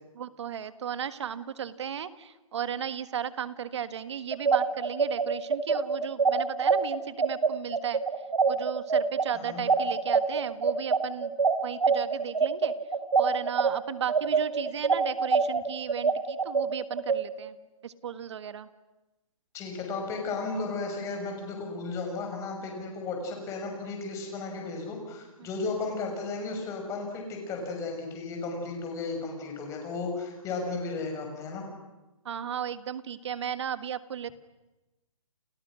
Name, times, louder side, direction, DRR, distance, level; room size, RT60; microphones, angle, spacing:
voice 1, 0.2-8.0 8.5-11.4 11.6-12.7 13.2-17.6 17.8-18.7 32.3-34.3, right 8 dB, 55° right, 13 dB, 1.7 m, -35 dB
sound 1, 4.3-13.7 14.1-17.2, right 5 dB, 90° right, 4.2 m, -24 dB
voice 2, 9.3-9.7 19.5-31.7, left 3 dB, 15° left, 2 dB, 6.3 m, -34 dB
30.0 x 29.5 x 6.3 m, 1.1 s
hypercardioid pair, 155°, 18 cm